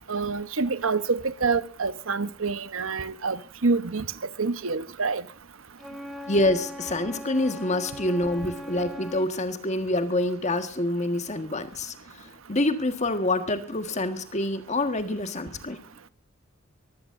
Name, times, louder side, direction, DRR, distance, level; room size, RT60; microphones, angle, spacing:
voice 1, 0.1-4.1 4.4-5.2, right 4 dB, 75° right, 1.0 m, -27 dB
Wind instrument woodwind instrument, 5.8-9.4, equal, ahead, 1.9 m, -40 dB
voice 2, 6.3-15.8, left 1 dB, 35° left, 1.6 m, -27 dB
23.5 x 16.5 x 2.6 m
head